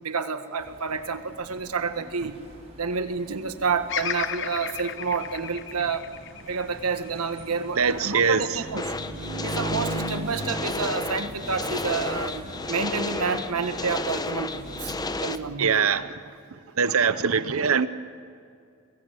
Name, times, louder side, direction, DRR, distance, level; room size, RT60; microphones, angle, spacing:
voice 1, 0.0-2.4 2.8-6.1 6.5-8.9 9.4-15.0 15.2-15.7, right 5 dB, 90° right, 1.6 m, -29 dB
sound 1, 0.6-15.3, right 2 dB, 30° right, 5.5 m, -40 dB
Bird vocalization bird call bird song, 3.9-8.1 8.7-9.4, left 9 dB, 55° left, 1.0 m, -35 dB
voice 2, 7.8-8.6 15.6-16.1 16.8-17.9, right 6 dB, 65° right, 0.8 m, -22 dB
sound 2, 8.8-15.4, left 3 dB, 20° left, 0.7 m, -32 dB
24.0 x 21.0 x 7.7 m
head